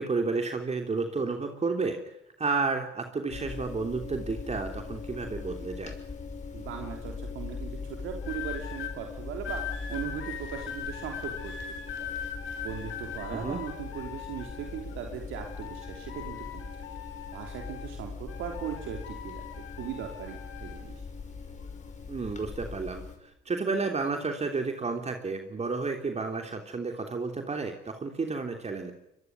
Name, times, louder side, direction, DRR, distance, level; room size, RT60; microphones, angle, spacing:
voice 1, 0.0-5.9 13.3-13.6 22.1-28.9, right 4 dB, 35° right, 4 dB, 3.3 m, -31 dB
sound 1, 3.3-23.2, left 4 dB, 35° left, 5.9 m, -41 dB
voice 2, 6.5-9.6 9.9-11.5 12.0-12.2 12.6-16.7 17.3-19.4 19.8-20.9, right 8 dB, 90° right, 3 dB, 3.4 m, -38 dB
sound 2, 8.2-8.9 9.4-15.0 15.3-18.0 18.3-20.8 21.6-21.9, left 8 dB, 85° left, 4.7 m, -41 dB
24.0 x 22.5 x 9.6 m, 0.84 s
cardioid pair, 90°, 20 cm